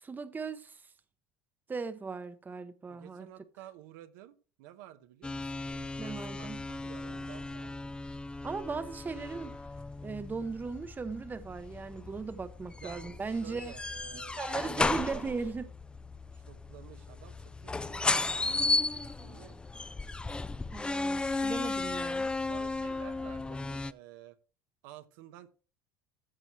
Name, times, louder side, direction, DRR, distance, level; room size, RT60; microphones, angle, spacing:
voice 1, 0.0-0.8 1.7-3.3 6.0-6.6 8.4-9.5 10.0-13.7 14.4-15.6 20.7-22.3, right 4 dB, 20° right, 0.7 m, -37 dB
voice 2, 2.9-8.0 12.8-15.4 16.3-19.6 22.4-24.4 24.8-25.5, right 12 dB, 85° right, 1.0 m, -52 dB
sound 1, 5.2-23.9, left 3 dB, 10° left, 0.3 m, -35 dB
14.0 x 6.2 x 3.1 m
supercardioid pair, 115°, 10 cm